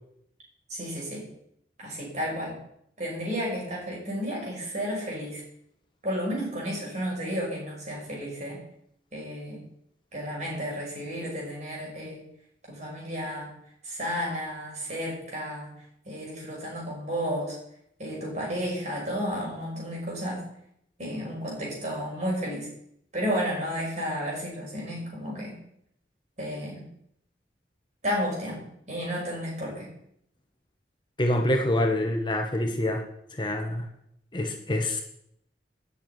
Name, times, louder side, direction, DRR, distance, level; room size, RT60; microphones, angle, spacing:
voice 1, 0.7-1.2 1.8-2.6 3.0-5.4 6.0-8.6 9.1-9.6 10.1-12.2 12.7-13.5 13.8-15.7 16.0-17.6 18.0-20.5 21.0-22.7 23.1-25.6 26.4-26.9 28.0-29.9, equal, 40° right, -3 dB, 6.1 m, -32 dB
voice 2, 31.2-33.0 33.3-33.9 34.3-35.0, left 1 dB, 25° left, 3 dB, 1.3 m, -26 dB
11.0 x 7.0 x 9.4 m, 0.75 s
head